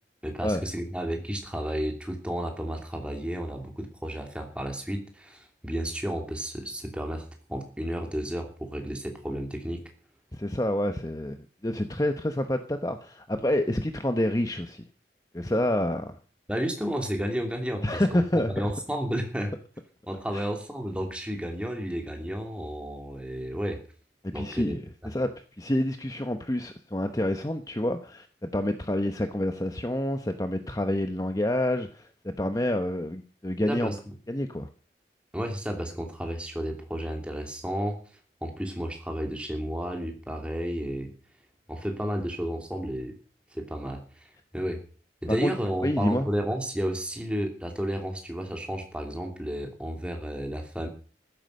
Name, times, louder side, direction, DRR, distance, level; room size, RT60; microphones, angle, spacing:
voice 1, 0.2-9.8 16.5-18.2 18.5-19.5 20.1-23.8 24.3-24.8 33.6-34.1 35.3-38.0 38.4-41.1 41.7-43.2 43.5-44.8 45.2-50.9, equal, 5° right, 3 dB, 2.8 m, -32 dB
voice 2, 10.3-14.8 15.3-16.1 17.8-18.7 20.3-20.5 24.2-24.8 25.0-25.3 25.6-33.9 34.3-34.7 45.3-45.5 45.8-46.3, left 1 dB, 20° left, 7 dB, 0.9 m, -28 dB
14.5 x 12.0 x 6.5 m, 0.41 s
head